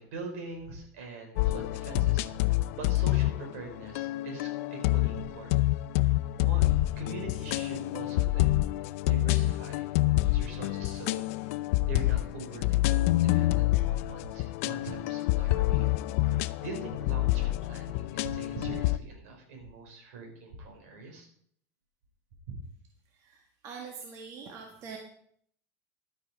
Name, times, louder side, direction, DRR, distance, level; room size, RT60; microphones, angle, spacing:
voice 1, 0.0-5.7 6.0-6.1 6.4-6.6 7.0-8.5 8.8-9.9 10.3-15.9 16.2-21.3 22.5-22.6, right 3 dB, 75° right, 2 dB, 4.5 m, -43 dB
sound 1, 1.4-19.0, left 17 dB, 65° left, 0.5 m, -27 dB
voice 2, 23.1-25.0, right 5 dB, 40° right, 2 dB, 1.8 m, -44 dB
11.5 x 8.7 x 4.8 m, 0.63 s
supercardioid pair, 145°, 8 cm